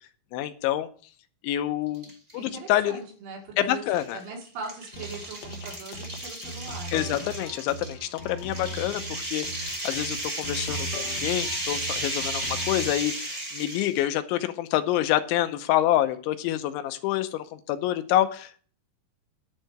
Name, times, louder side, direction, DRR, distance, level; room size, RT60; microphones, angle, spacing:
voice 1, 0.3-0.9 1.4-2.1 2.3-3.0 3.6-4.2 6.9-18.6, left 13 dB, 90° left, 10 dB, 3.1 m, -27 dB
sound 1, 1.9-2.3 2.8-2.9 3.9-14.0, right 1 dB, 30° right, 1.4 m, -34 dB
voice 2, 2.3-3.8 4.1-7.2, right 4 dB, 85° right, 0 dB, 4.7 m, -40 dB
sound 2, 4.9-12.9, equal, 70° left, 2.6 m, -39 dB
10.5 x 4.6 x 7.7 m, 0.43 s
omnidirectional pair, 5.3 m